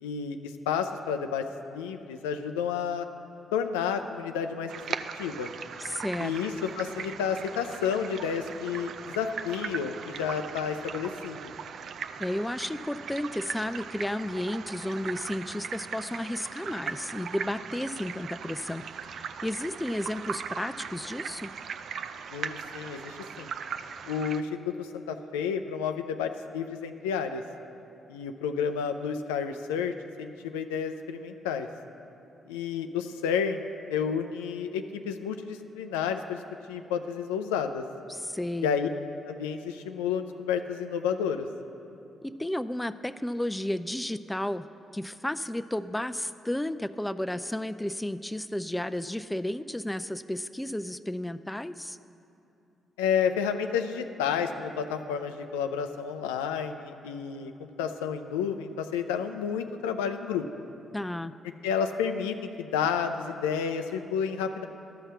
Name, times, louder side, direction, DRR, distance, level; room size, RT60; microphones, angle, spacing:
voice 1, 0.0-3.1 3.5-4.7 5.1-5.5 6.2-11.5 22.3-23.5 24.1-27.4 28.1-31.7 32.5-33.6 33.9-36.4 36.7-37.8 38.6-38.9 39.3-41.5 53.0-60.5 61.6-64.6, left 7 dB, 85° left, 7 dB, 0.4 m, -31 dB
sound 1, 4.7-24.4, right 6 dB, 65° right, 0.4 m, -39 dB
voice 2, 5.8-6.4 12.2-21.5 38.1-38.7 42.2-44.7 44.9-52.0 60.9-61.3, left 1 dB, 10° left, 12 dB, 0.4 m, -33 dB
12.5 x 5.7 x 6.8 m, 2.7 s
hypercardioid pair, 45°, 0 cm